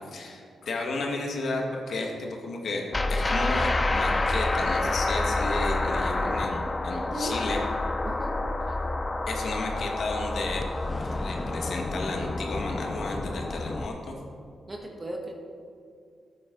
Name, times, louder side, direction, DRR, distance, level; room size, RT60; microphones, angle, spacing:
voice 1, 0.0-2.8 3.1-7.6 9.3-10.6 10.9-14.2, left 3 dB, 65° left, 1 dB, 1.8 m, -33 dB
sound 1, 2.9-13.9, left 2 dB, 25° left, 0.5 m, -28 dB
voice 2, 6.9-7.4 8.0-8.4 14.7-15.3, right 1 dB, 25° right, 1 dB, 1.5 m, -36 dB
13.5 x 8.7 x 4.0 m, 2.3 s
cardioid pair, 100°, 0 cm